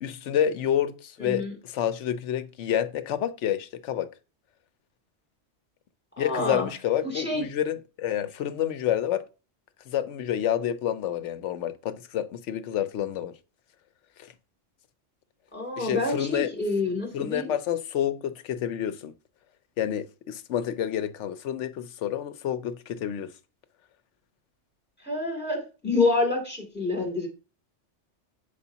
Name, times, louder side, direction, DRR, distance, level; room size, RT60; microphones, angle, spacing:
voice 1, 0.0-4.1 6.2-9.2 9.9-13.3 14.2-14.3 15.8-16.5 17.1-19.1 19.8-23.3, left 10 dB, 80° left, 1.0 m, -29 dB
voice 2, 1.2-1.5 6.2-6.7 7.0-7.4 15.5-17.5 25.0-27.3, left 3 dB, 10° left, 2.4 m, -27 dB
7.0 x 4.9 x 2.8 m
omnidirectional pair, 1.2 m